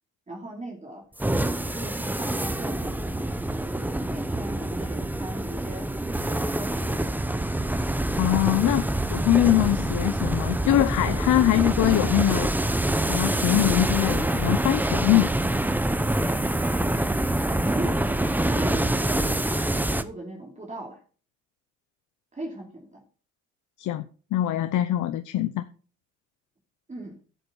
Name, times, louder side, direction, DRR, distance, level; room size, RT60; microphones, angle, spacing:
voice 1, 0.3-1.0 1.4-7.1 17.5-21.0 22.3-23.0 26.9-27.2, right 2 dB, 25° right, 0 dB, 2.8 m, -38 dB
sound 1, 1.2-20.0, right 1 dB, 5° right, 0.8 m, -26 dB
voice 2, 8.2-12.5 13.0-15.3 23.8-24.0 24.3-25.6, left 14 dB, 80° left, 10 dB, 0.8 m, -23 dB
11.0 x 8.2 x 4.0 m, 0.37 s
cardioid pair, 90°, 30 cm